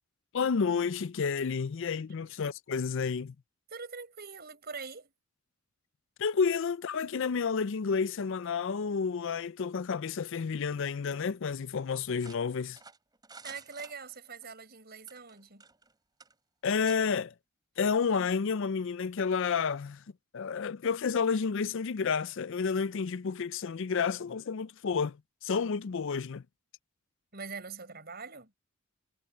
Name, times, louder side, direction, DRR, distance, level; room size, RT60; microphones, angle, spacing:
voice 1, 0.3-3.3 6.2-12.8 16.6-17.3 17.8-20.0 20.3-25.2 25.4-26.4, left 5 dB, 60° left, 0.5 m, -30 dB
voice 2, 3.7-5.1 13.4-15.6 27.3-28.5, right 5 dB, 50° right, 7.1 m, -43 dB
sound 1, 12.2-14.5 15.0-15.9 16.2-16.3 16.8-17.0, right 4 dB, 20° right, 3.5 m, -51 dB
head